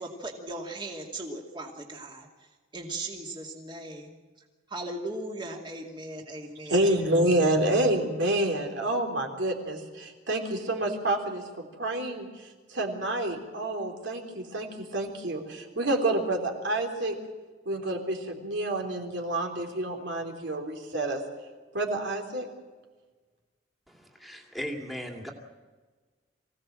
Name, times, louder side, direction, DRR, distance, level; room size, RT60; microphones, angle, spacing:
voice 1, 0.0-2.3 2.7-4.2 4.7-7.0, right 2 dB, 25° right, 1 dB, 2.6 m, -38 dB
voice 2, 6.7-12.3 12.7-17.2 17.7-21.2 21.7-22.5, right 1 dB, 65° right, 3 dB, 3.6 m, -28 dB
voice 3, 23.9-25.3, equal, ahead, 2 dB, 2.4 m, -37 dB
25.0 x 17.0 x 7.6 m, 1.4 s
head